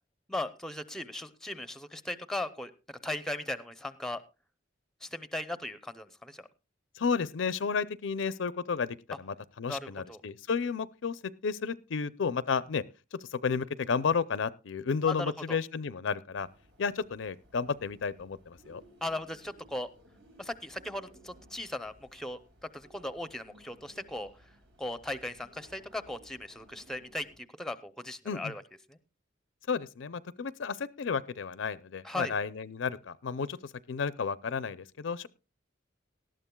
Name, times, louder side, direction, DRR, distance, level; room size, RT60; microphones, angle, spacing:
voice 1, 0.3-4.2 5.0-6.5 9.7-10.2 15.1-15.6 19.0-19.9 20.4-22.4 22.7-24.3 24.8-28.6 28.9-29.0 32.0-32.3, left 1 dB, ahead, 12 dB, 0.6 m, -38 dB
voice 2, 7.0-12.8 13.1-16.5 16.8-18.8 28.2-28.5 29.7-35.3, left 5 dB, 70° left, 17 dB, 0.5 m, -32 dB
sound 1, 16.3-27.4, right 1 dB, 80° right, 4.6 m, -59 dB
18.5 x 12.5 x 2.2 m, 0.30 s
head